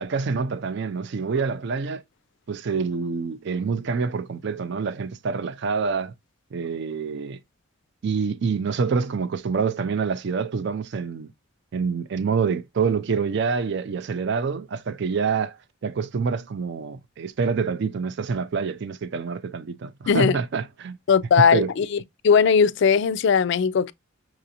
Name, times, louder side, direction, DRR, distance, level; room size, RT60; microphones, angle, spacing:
voice 1, 0.0-2.0 2.5-6.1 6.5-7.4 8.0-11.3 11.7-21.0 21.5-21.7, right 5 dB, 55° right, 0.4 m, -26 dB
voice 2, 20.1-20.4 21.1-21.9 22.2-23.9, left 6 dB, 60° left, 0.3 m, -18 dB
5.8 x 2.5 x 2.7 m
head